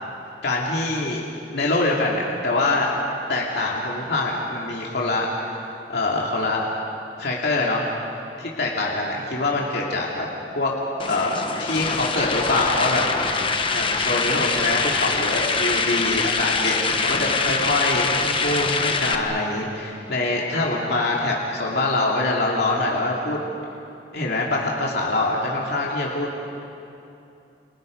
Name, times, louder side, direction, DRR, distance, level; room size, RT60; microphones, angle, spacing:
voice 1, 0.4-1.2 1.5-2.9 3.3-6.6 7.2-7.9 8.4-10.3 10.5-10.7 11.1-13.1 13.7-23.4 24.1-26.3, left 2 dB, 65° left, -3 dB, 2.8 m, -24 dB
sound 1, 11.0-19.1, left 4 dB, 30° left, 1.4 m, -24 dB
29.5 x 29.5 x 5.4 m, 2.8 s
head